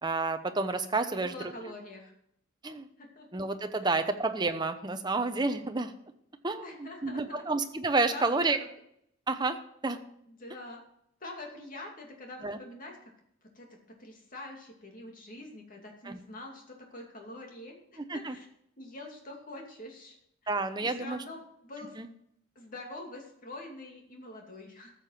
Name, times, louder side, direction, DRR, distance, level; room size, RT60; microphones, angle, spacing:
voice 1, 0.0-1.3 2.6-2.9 3.3-5.9 6.4-8.6 9.3-9.6 9.8-10.0 12.4-12.6 16.0-16.2 18.1-18.3 20.5-21.2 22.0-22.1, right 3 dB, 20° right, 7 dB, 0.8 m, -30 dB
voice 2, 1.1-2.1 3.0-3.4 3.8-3.9 6.6-7.4 8.1-8.7 10.3-10.8 11.2-13.0 13.6-18.5 18.8-20.2 20.4-20.5 20.8-22.0 22.6-24.9, left 2 dB, 40° left, 1 dB, 2.6 m, -45 dB
14.0 x 6.9 x 5.8 m, 0.72 s
head